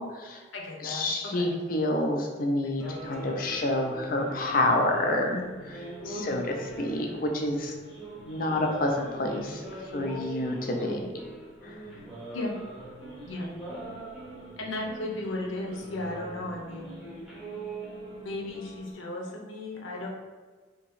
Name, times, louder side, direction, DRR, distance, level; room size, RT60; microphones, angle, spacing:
voice 1, 0.0-0.4 0.8-7.7 8.3-9.6 9.9-11.0 11.6-11.8, left 1 dB, 45° left, 2 dB, 0.5 m, -28 dB
voice 2, 0.5-1.1 1.3-1.5 2.8-3.1 6.1-6.4 10.8-11.0 12.3-12.5 13.2-13.5 14.6-16.9 18.1-20.1, left 2 dB, 85° left, -1 dB, 0.8 m, -35 dB
sound 1, 2.8-18.9, right 2 dB, 5° right, 0.7 m, -42 dB
2.9 x 2.8 x 4.1 m, 1.4 s
head